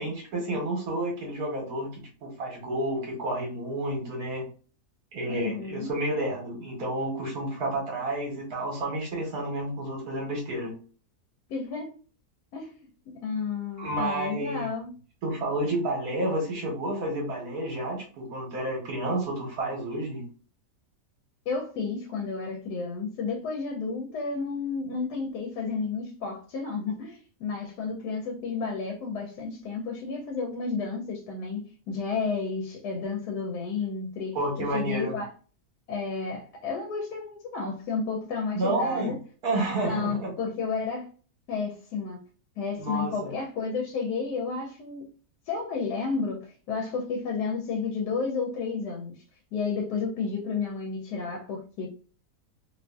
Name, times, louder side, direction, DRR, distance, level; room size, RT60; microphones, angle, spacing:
voice 1, 0.0-4.4 5.1-10.7 13.8-14.7 15.2-20.3 34.3-35.2 38.5-39.1 39.4-40.3 42.8-43.3, right 1 dB, 70° right, 1.3 m, -30 dB
voice 2, 5.3-5.9 11.5-11.9 12.5-14.9 21.5-35.3 35.9-39.2 39.8-41.1 41.5-42.2 42.6-45.1 45.5-49.2 49.5-51.9, left 4 dB, 75° left, 1.1 m, -32 dB
2.7 x 2.5 x 2.3 m
omnidirectional pair, 1.7 m